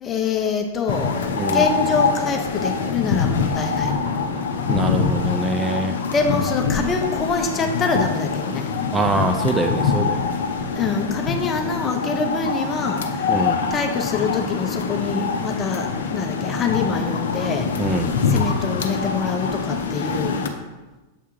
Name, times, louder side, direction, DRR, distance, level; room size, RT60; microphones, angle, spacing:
voice 1, 0.0-4.4 6.1-8.7 10.7-13.4 13.7-17.9 18.3-20.4, left 4 dB, 25° left, 4 dB, 0.8 m, -25 dB
sound 1, 0.9-20.5, left 5 dB, 65° left, 0.6 m, -24 dB
voice 2, 4.7-6.0 8.9-10.5 13.3-13.6 17.8-18.1, right 2 dB, 15° right, 5 dB, 0.4 m, -23 dB
7.0 x 3.5 x 4.5 m, 1.1 s
figure-of-eight pair, 95°, 0 cm